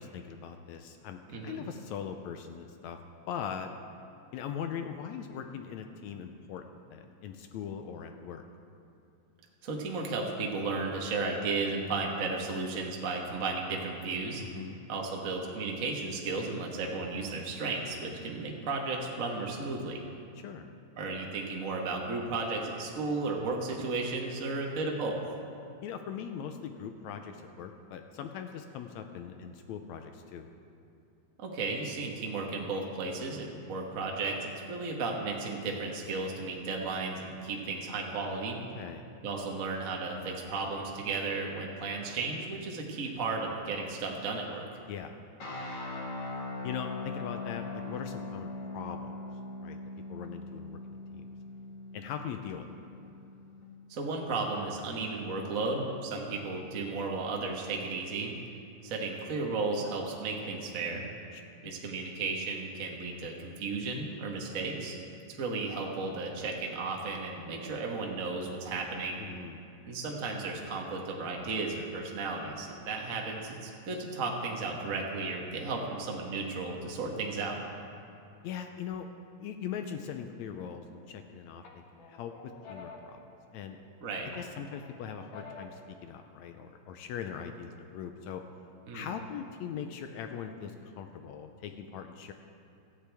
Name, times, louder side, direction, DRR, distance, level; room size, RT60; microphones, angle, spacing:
voice 1, 0.0-3.0 3.3-3.7 4.3-8.4 14.4-14.8 20.4-20.7 25.8-30.5 38.8-39.0 44.9-45.2 46.6-49.1 49.6-49.8 50.1-51.3 51.9-52.7 69.2-69.6 78.4-79.1 79.4-81.6 82.0-82.3 82.7-83.2 83.5-83.8 84.2-88.4 88.9-92.3, left 8 dB, 80° left, 6 dB, 1.8 m, -40 dB
voice 2, 1.3-1.6 9.6-14.4 14.9-20.0 21.0-25.2 31.4-38.6 39.2-44.6 53.9-58.3 58.8-61.0 61.6-64.9 65.4-69.2 69.8-77.6 84.0-84.3 88.9-89.1, right 3 dB, 55° right, 0 dB, 0.9 m, -34 dB
sound 1, 45.4-53.6, left 3 dB, 45° left, 2.0 m, -41 dB
sound 2, 80.6-81.2 81.6-83.9 84.3-85.9, left 3 dB, 60° left, 1.3 m, -50 dB
17.0 x 13.5 x 3.5 m, 2.6 s
omnidirectional pair, 3.5 m